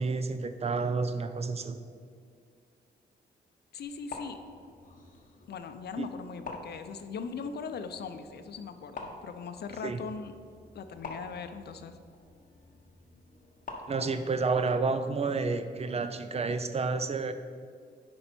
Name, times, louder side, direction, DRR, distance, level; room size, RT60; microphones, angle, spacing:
voice 1, 0.0-1.8 6.0-6.1 9.8-10.0 13.9-17.3, right 4 dB, 35° right, 10 dB, 0.5 m, -30 dB
voice 2, 3.7-4.4 5.5-10.3 10.7-12.0, left 5 dB, 65° left, 9 dB, 0.6 m, -40 dB
sound 1, 3.8-14.4, left 3 dB, 45° left, 1.2 m, -48 dB
9.4 x 5.5 x 4.4 m, 2.2 s
cardioid pair, 115°, 18 cm